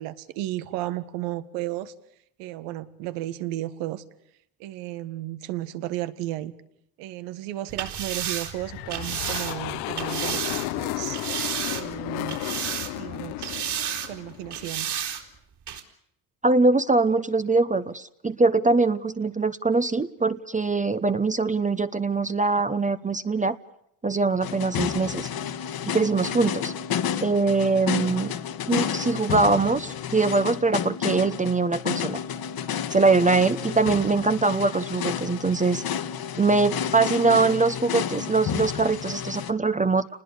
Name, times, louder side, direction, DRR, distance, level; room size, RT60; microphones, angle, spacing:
voice 1, 0.0-1.9 2.4-4.0 4.6-6.5 7.0-11.2 11.7-12.4 13.0-13.6 14.1-14.9, right 15 dB, 90° right, 14 dB, 1.8 m, -33 dB
sound 1, 7.7-10.7 11.1-12.0 12.3-13.1 13.4-14.1 14.5-15.2 15.7-15.8, right 9 dB, 55° right, 4.6 m, -31 dB
sound 2, 8.5-14.9, left 16 dB, 85° left, 1.2 m, -33 dB
voice 2, 16.4-23.5 24.0-25.3 25.9-26.7 27.2-28.3 28.7-32.2 32.9-35.8 36.4-40.1, right 3 dB, 15° right, 12 dB, 1.0 m, -22 dB
sound 3, 24.4-39.5, left 8 dB, 45° left, 1.6 m, -31 dB
29.5 x 20.5 x 6.9 m, 0.76 s
supercardioid pair, 95°, 49 cm